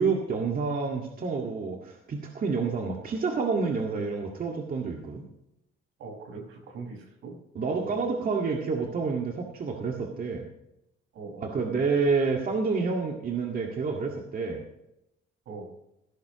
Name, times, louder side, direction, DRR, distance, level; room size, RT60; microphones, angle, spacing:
voice 1, 0.0-5.3 7.6-10.5 11.4-14.6, right 4 dB, 45° right, 1 dB, 1.9 m, -28 dB
voice 2, 6.0-7.3 7.8-8.0 11.1-11.5 15.5-15.7, right 4 dB, 80° right, 1 dB, 5.6 m, -41 dB
16.5 x 13.0 x 3.1 m, 0.86 s
cardioid pair, 110°, 21 cm